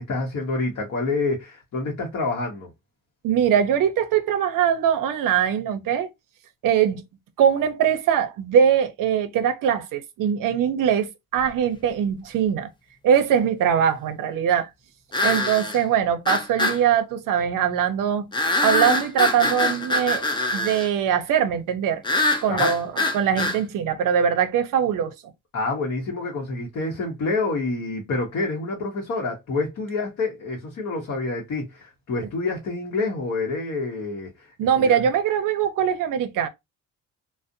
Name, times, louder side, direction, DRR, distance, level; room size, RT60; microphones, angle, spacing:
voice 1, 0.0-2.7 22.5-22.7 25.5-35.0, left 3 dB, 50° left, 0.7 m, -27 dB
voice 2, 3.2-6.1 6.6-7.0 7.4-12.7 13.0-14.7 15.2-18.3 18.6-20.2 20.5-22.0 22.4-25.1 34.6-36.5, right 8 dB, 70° right, 0.6 m, -22 dB
sound 1, 11.5-11.6 15.1-15.8 16.2-16.8 18.3-20.9 22.0-23.6, left 2 dB, 15° left, 0.4 m, -23 dB
2.5 x 2.0 x 2.6 m
cardioid pair, 115°, 34 cm